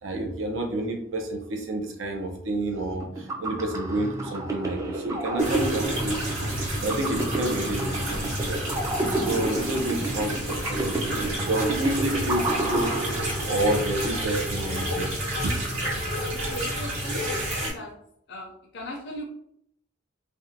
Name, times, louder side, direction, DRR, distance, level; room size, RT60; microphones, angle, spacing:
voice 1, 0.0-6.5 6.8-8.6 9.1-13.0 13.4-15.2 15.4-15.6, right 1 dB, 75° right, 4 dB, 0.6 m, -29 dB
sound 1, 3.0-13.8, right 2 dB, 15° right, 0.3 m, -31 dB
sound 2, 5.4-17.7, equal, 90° right, 1.4 m, -30 dB
voice 2, 16.5-17.9 18.3-19.2, equal, 60° left, -2 dB, 0.5 m, -38 dB
2.6 x 2.1 x 2.6 m, 0.72 s
head